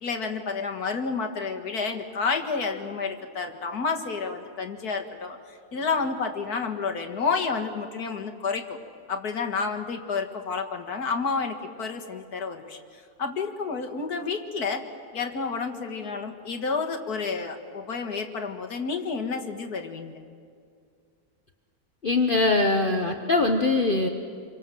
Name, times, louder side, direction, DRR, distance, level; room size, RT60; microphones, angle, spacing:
voice 1, 0.0-8.8 9.1-14.8 15.1-20.2, left 4 dB, 85° left, 4 dB, 2.3 m, -30 dB
voice 2, 22.0-24.1, left 3 dB, 40° left, 4 dB, 1.2 m, -22 dB
28.5 x 24.5 x 7.7 m, 2.3 s
omnidirectional pair, 1.6 m